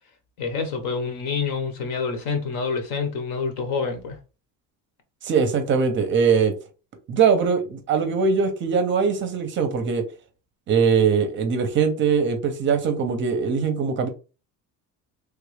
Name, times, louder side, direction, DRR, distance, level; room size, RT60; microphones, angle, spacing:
voice 1, 0.4-4.2, left 5 dB, 75° left, 1.1 m, -27 dB
voice 2, 5.2-6.5 7.1-10.0 10.7-14.1, right 6 dB, 35° right, 0.5 m, -21 dB
3.3 x 2.3 x 3.2 m
cardioid pair, 180°, 35 cm